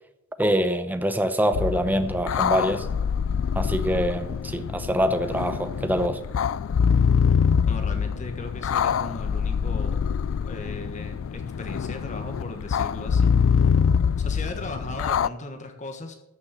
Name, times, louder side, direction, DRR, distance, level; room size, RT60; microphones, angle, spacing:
voice 1, 0.4-2.9 3.5-6.2, equal, 10° right, 0.8 m, -24 dB
sound 1, 1.5-15.3, left 6 dB, 75° left, 0.3 m, -24 dB
voice 2, 7.7-10.1 10.4-13.6 14.2-16.1, left 2 dB, 35° left, 1.5 m, -37 dB
13.5 x 6.4 x 7.3 m
head